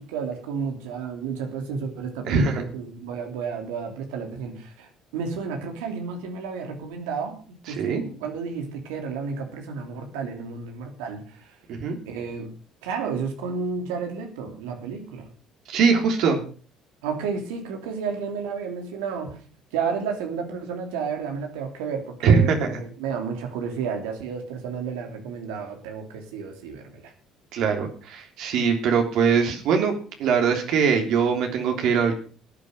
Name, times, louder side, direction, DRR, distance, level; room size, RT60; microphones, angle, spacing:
voice 1, 0.0-7.4 7.7-11.2 12.1-12.5 12.8-15.3 17.0-19.4 19.7-27.0, right 5 dB, 85° right, 4 dB, 2.9 m, -31 dB
voice 2, 2.3-2.6 7.7-8.0 11.7-12.0 15.7-16.4 22.2-22.8 27.5-29.9 30.2-32.1, right 6 dB, 70° right, 3 dB, 3.3 m, -21 dB
14.0 x 9.0 x 6.5 m, 0.41 s
supercardioid pair, 75°, 0 cm